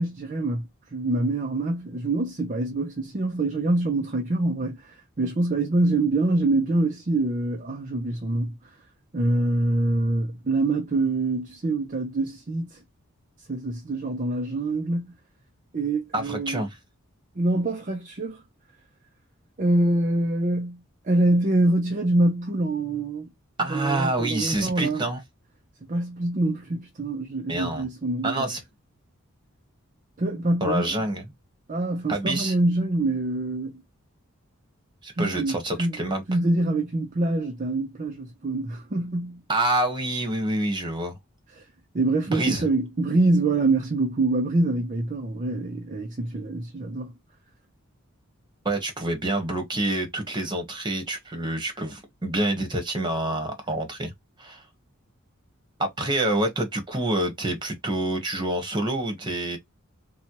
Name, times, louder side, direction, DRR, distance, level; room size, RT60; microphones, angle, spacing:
voice 1, 0.0-8.5 9.1-12.8 13.5-15.1 15.7-16.7 17.4-18.4 19.6-23.3 23.7-25.0 25.9-28.5 30.2-30.9 31.7-33.7 35.2-39.4 41.6-41.7 41.9-47.1, right 2 dB, 35° right, 0.6 m, -25 dB
voice 2, 16.1-16.8 23.6-25.2 27.5-27.9 28.2-28.6 30.6-31.2 32.1-32.5 35.0-36.2 39.5-41.2 42.3-42.6 48.6-54.1 54.4-54.6 55.8-59.6, right 1 dB, 20° right, 1.3 m, -27 dB
4.1 x 2.4 x 2.9 m
head